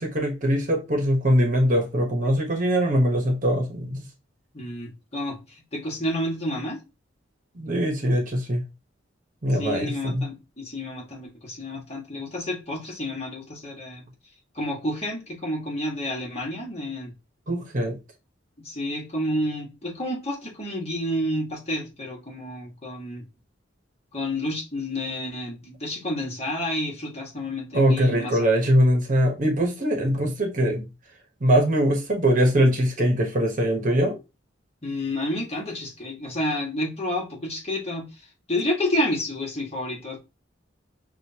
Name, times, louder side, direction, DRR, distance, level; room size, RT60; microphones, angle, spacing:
voice 1, 0.0-4.0 7.5-8.6 9.4-10.2 17.5-18.0 27.7-30.9 31.4-34.2, equal, 45° right, 1.0 m, -22 dB
voice 2, 4.5-5.4 5.7-6.8 9.6-14.0 14.5-17.1 18.6-23.2 24.1-28.4 34.8-38.1 38.5-40.2, left 1 dB, 35° left, 1.5 m, -30 dB
6.3 x 2.5 x 2.8 m
head